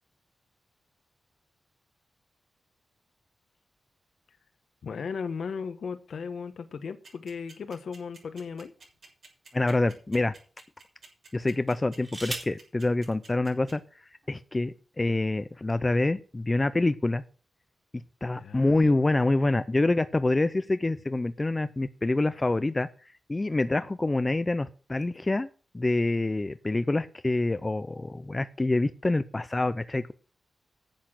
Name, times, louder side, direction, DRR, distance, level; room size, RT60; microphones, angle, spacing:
voice 1, 4.8-8.7 18.3-18.8, left 5 dB, 70° left, 10 dB, 1.2 m, -36 dB
sound 1, 7.0-13.7, right 4 dB, 50° right, 6.8 m, -50 dB
sound 2, 7.9-9.1 9.8-10.0 11.6-12.7 13.8-13.9 14.2-14.6, right 1 dB, 15° right, 3.2 m, -40 dB
voice 2, 9.5-10.3 11.3-13.8 14.3-17.2 18.2-22.9 23.3-25.5 25.7-30.1, left 2 dB, 20° left, 12 dB, 0.5 m, -26 dB
10.5 x 8.0 x 6.4 m, 0.38 s
wide cardioid pair, 150°, 0 cm